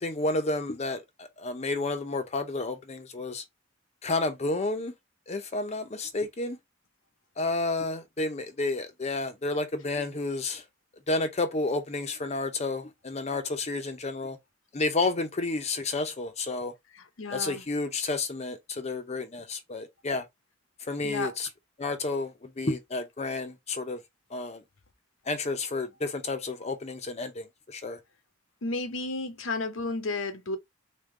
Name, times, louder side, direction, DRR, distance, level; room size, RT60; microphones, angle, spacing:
voice 1, 0.0-3.4 4.0-4.9 5.3-6.6 7.4-10.6 11.1-14.4 14.7-16.7 17.3-20.2 20.8-21.5 21.8-24.0 24.3-24.6 25.3-28.0, left 2 dB, 35° left, 0.7 m, -31 dB
voice 2, 16.9-17.6 21.0-21.4 28.6-30.6, left 3 dB, 90° left, 1.0 m, -32 dB
3.7 x 3.6 x 3.7 m
head